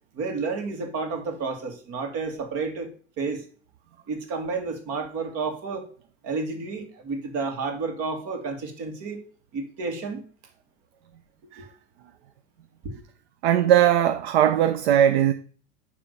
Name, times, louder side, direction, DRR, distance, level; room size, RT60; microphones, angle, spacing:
voice 1, 0.1-2.9 3.2-3.4 4.1-5.9 6.2-9.2 9.5-10.2 12.8-12.9, right 4 dB, 45° right, 2.5 m, -31 dB
voice 2, 13.4-15.3, right 10 dB, 65° right, 0.9 m, -19 dB
10.5 x 3.6 x 6.9 m
hypercardioid pair, 95°, 33 cm